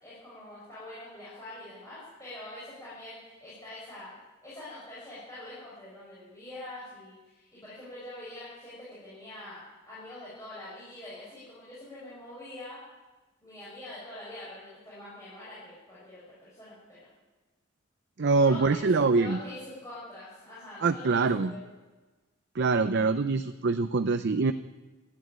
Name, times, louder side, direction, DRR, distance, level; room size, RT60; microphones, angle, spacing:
voice 1, 0.0-12.8 13.4-17.1 18.4-21.6, left 1 dB, 15° left, -9 dB, 6.4 m, -44 dB
voice 2, 18.2-19.4 20.8-21.5 22.5-24.5, right 4 dB, 55° right, 10 dB, 0.6 m, -24 dB
14.0 x 11.0 x 8.9 m, 1.2 s
head